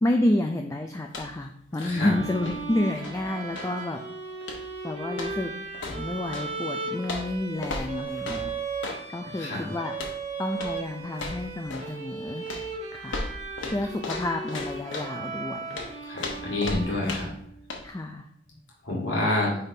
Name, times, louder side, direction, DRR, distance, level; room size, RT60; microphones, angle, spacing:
voice 1, 0.0-4.0 4.8-5.5 5.9-8.5 9.1-9.9 10.4-12.5 12.9-13.2 13.7-15.8 16.9-17.2 17.8-18.3, left 1 dB, 15° left, 3 dB, 0.4 m, -29 dB
sound 1, 1.0-1.5 1.7-3.8 4.4-4.8 5.1-6.5 7.0-9.1 9.9-10.2 10.5-10.8 11.1-12.0 12.5-15.2 15.7-17.4 17.7-17.9, left 2 dB, 90° left, 1.1 m, -36 dB
voice 2, 1.8-2.1 9.4-9.7 16.0-17.3 18.8-19.6, left 2 dB, 75° left, -5 dB, 2.2 m, -28 dB
sound 2, 1.9-17.6, right 4 dB, 40° right, 1.4 m, -37 dB
9.6 x 3.6 x 2.7 m, 0.73 s
head